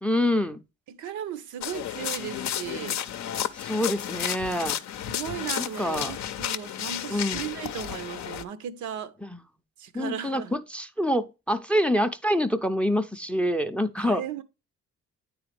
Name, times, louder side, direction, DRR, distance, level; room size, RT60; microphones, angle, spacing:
voice 1, 0.0-0.6 3.5-4.7 5.6-6.1 7.1-7.4 9.2-9.4 9.9-14.2, equal, 5° left, 0.4 m, -26 dB
voice 2, 0.9-3.0 5.1-9.2 9.8-10.6 14.0-14.4, right 9 dB, 75° right, 0.7 m, -36 dB
sound 1, 1.6-8.4, left 10 dB, 65° left, 0.6 m, -32 dB
9.1 x 3.9 x 3.2 m
cardioid pair, 90°, 30 cm